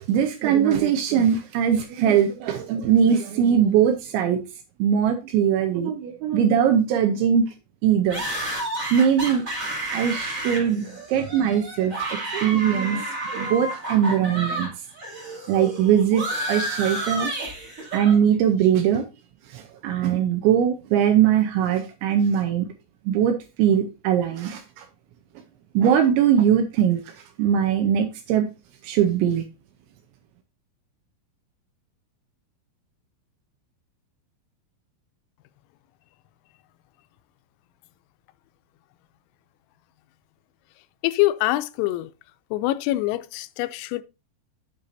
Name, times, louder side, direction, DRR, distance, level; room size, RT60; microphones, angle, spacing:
voice 1, 0.1-4.4 4.8-7.5 7.8-8.2 8.9-9.4 9.9-14.7 15.5-17.3 17.9-19.1 19.5-22.7 23.1-24.8 25.7-27.0 27.4-28.5 28.8-29.4, right 8 dB, 85° right, 2.8 m, -21 dB
sound 1, 8.1-14.7 15.0-18.1, right 1 dB, 30° right, 1.5 m, -31 dB
voice 2, 41.0-42.1 42.5-44.0, left 17 dB, 90° left, 3.2 m, -24 dB
9.1 x 7.1 x 2.6 m
omnidirectional pair, 5.9 m